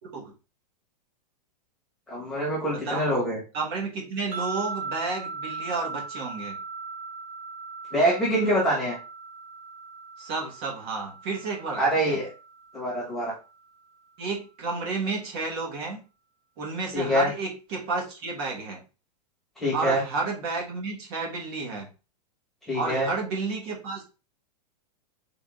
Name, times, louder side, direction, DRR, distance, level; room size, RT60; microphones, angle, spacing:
voice 1, 0.0-0.3 2.7-3.0 3.5-6.6 10.2-12.2 14.2-16.0 16.6-18.8 19.7-21.9 22.7-24.0, right 3 dB, 35° right, 0 dB, 1.5 m, -31 dB
voice 2, 2.1-3.4 7.9-9.0 11.8-12.3 12.7-13.3 16.9-17.3 19.6-20.0 22.7-23.1, right 1 dB, ahead, -6 dB, 1.4 m, -25 dB
sound 1, 4.3-13.6, right 4 dB, 65° right, 1.1 m, -39 dB
3.8 x 3.8 x 3.6 m, 0.31 s
supercardioid pair, 175°, 21 cm